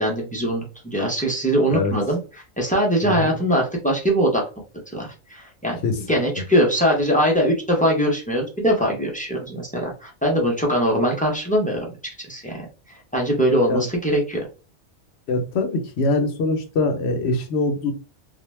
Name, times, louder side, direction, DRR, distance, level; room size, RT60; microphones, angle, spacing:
voice 1, 0.0-2.2 2.6-4.4 4.9-11.8 12.3-12.6 13.1-14.5, equal, 10° left, -1 dB, 0.4 m, -21 dB
voice 2, 3.0-3.3 5.8-6.2 13.7-13.8 15.3-17.9, left 3 dB, 65° left, 6 dB, 0.8 m, -23 dB
2.4 x 2.1 x 3.1 m, 0.34 s
omnidirectional pair, 1.2 m